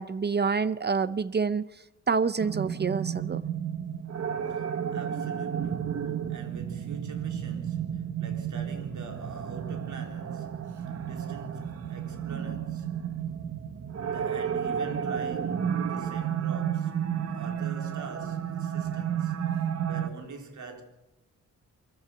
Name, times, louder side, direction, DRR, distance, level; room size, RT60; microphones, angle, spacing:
voice 1, 0.0-1.7 2.1-3.4, right 5 dB, 35° right, 0.6 m, -27 dB
sound 1, 2.4-20.1, right 8 dB, 55° right, 1.2 m, -32 dB
voice 2, 4.5-13.1 14.0-17.0 17.3-20.8, right 4 dB, 70° right, 3.8 m, -44 dB
24.0 x 14.5 x 8.3 m
wide cardioid pair, 130°, 30 cm